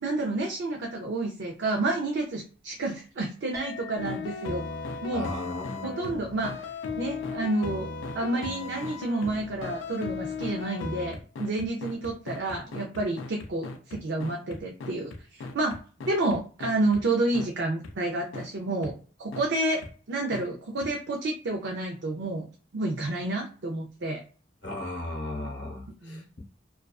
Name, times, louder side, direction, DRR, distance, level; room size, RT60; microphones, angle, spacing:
voice 1, 0.0-4.6 5.0-5.3 5.8-6.5 7.0-7.9 8.1-15.8 16.1-18.9 19.2-19.8 20.1-22.5 22.7-24.2 26.0-26.3, right 2 dB, 65° right, 0.5 m, -29 dB
Chink clink, 3.5-12.2, left 5 dB, 15° right, 0.9 m, -48 dB
sound 1, 4.0-17.0 17.3-17.5 17.8-17.9 18.3-18.5 18.8-18.9 19.3-19.5 19.8-19.9 20.3-20.4 20.8-20.9, left 4 dB, 85° left, 0.4 m, -37 dB
voice 2, 5.1-6.2 24.6-26.4, left 2 dB, 65° left, 0.9 m, -36 dB
2.3 x 2.3 x 2.3 m
head